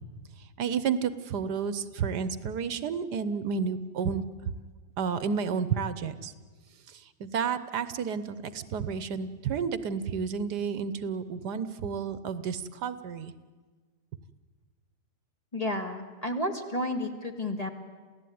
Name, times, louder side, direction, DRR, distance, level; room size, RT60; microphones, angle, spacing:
voice 1, 0.6-4.5 5.0-6.3 6.9-13.3, right 6 dB, 75° right, 14 dB, 1.5 m, -31 dB
voice 2, 15.5-17.7, left 1 dB, 20° left, 4 dB, 1.9 m, -31 dB
28.0 x 16.0 x 9.4 m, 1.5 s
omnidirectional pair, 1.8 m